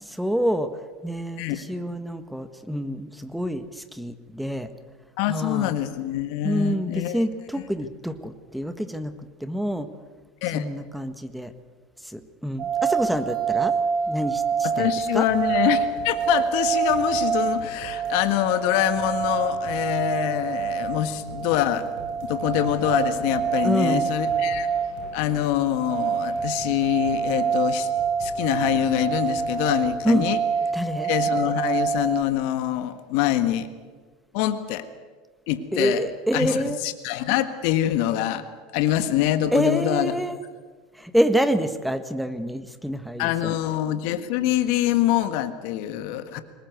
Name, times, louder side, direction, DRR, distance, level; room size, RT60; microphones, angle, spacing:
voice 1, 0.1-0.7 1.0-4.7 5.3-5.7 6.4-9.1 9.4-9.9 10.5-11.5 12.0-13.7 14.1-15.3 23.6-24.1 30.0-30.3 30.7-31.1 35.7-36.8 39.5-40.4 41.0-43.5, equal, ahead, 10 dB, 1.6 m, -27 dB
voice 2, 5.2-7.2 10.4-10.6 14.6-21.9 22.2-24.7 25.1-27.9 28.2-30.4 31.0-33.7 34.3-34.9 35.5-36.0 36.3-38.4 38.7-40.1 43.2-46.4, left 12 dB, 65° left, 10 dB, 1.5 m, -25 dB
sound 1, 12.6-32.2, right 6 dB, 45° right, 1.9 m, -26 dB
sound 2, 15.3-30.0, right 4 dB, 65° right, 5.5 m, -44 dB
22.5 x 20.0 x 8.1 m, 1.4 s
hypercardioid pair, 85°, 0 cm